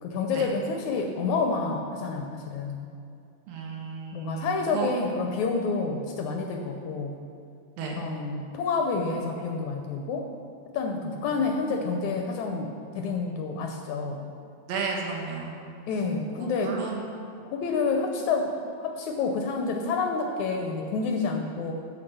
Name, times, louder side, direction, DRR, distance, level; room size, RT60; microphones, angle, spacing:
voice 1, 0.0-2.9 4.1-7.2 8.0-10.3 10.7-14.3 15.9-16.8 17.5-21.7, left 4 dB, 75° left, 3 dB, 1.8 m, -29 dB
voice 2, 3.5-4.9 7.8-8.0 14.7-15.5 16.4-17.1, right 5 dB, 90° right, -1 dB, 3.3 m, -33 dB
13.5 x 5.3 x 6.9 m, 2.5 s
omnidirectional pair, 4.0 m